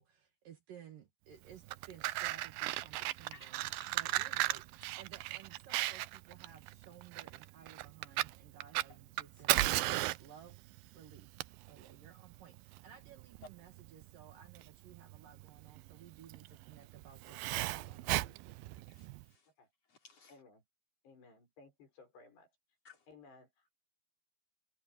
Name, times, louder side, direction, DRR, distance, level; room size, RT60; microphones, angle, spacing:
voice 1, 0.0-4.6 5.0-10.6 10.9-11.4 11.7-18.6, right 9 dB, 60° right, 3.0 m, -56 dB
Fire, 1.5-19.2, right 17 dB, 80° right, 2.2 m, -36 dB
voice 2, 3.3-3.9 4.5-4.6 8.9-9.0 18.9-19.5 19.9-20.4 22.8-23.1, left 5 dB, 40° left, 4.8 m, -60 dB
voice 3, 20.3-20.6 21.0-22.5 23.1-23.8, left 3 dB, 85° left, 9.0 m, -59 dB
omnidirectional pair, 4.7 m